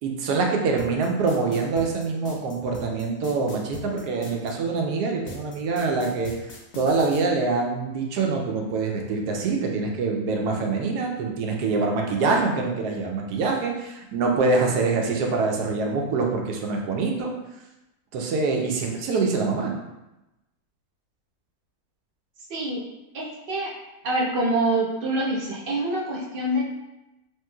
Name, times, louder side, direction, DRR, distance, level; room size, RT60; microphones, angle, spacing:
voice 1, 0.0-6.3 6.8-17.3 18.1-19.7, right 4 dB, 90° right, 1 dB, 1.1 m, -25 dB
sound 1, 0.8-4.5 5.3-7.2, left 1 dB, 85° left, 1.1 m, -40 dB
voice 2, 22.5-22.8 23.1-23.7 24.0-26.7, right 1 dB, 60° right, -4 dB, 0.5 m, -25 dB
3.0 x 2.9 x 2.2 m, 0.98 s
omnidirectional pair, 1.6 m